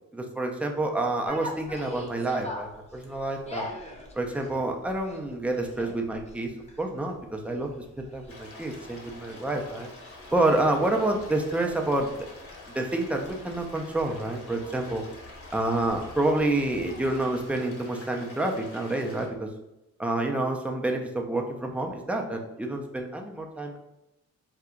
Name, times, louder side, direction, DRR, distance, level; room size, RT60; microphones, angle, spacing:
voice 1, 0.1-3.6 4.2-6.5 6.8-7.7 8.0-9.9 10.3-12.3 12.7-15.0 15.5-19.5 20.0-23.8, right 2 dB, 5° right, 2 dB, 0.4 m, -28 dB
sound 1, 1.2-17.5, left 1 dB, 20° left, 0.8 m, -45 dB
sound 2, 8.3-19.3, left 2 dB, 45° left, 1.0 m, -46 dB
2.8 x 2.3 x 3.6 m, 0.91 s
cardioid pair, 90°, 30 cm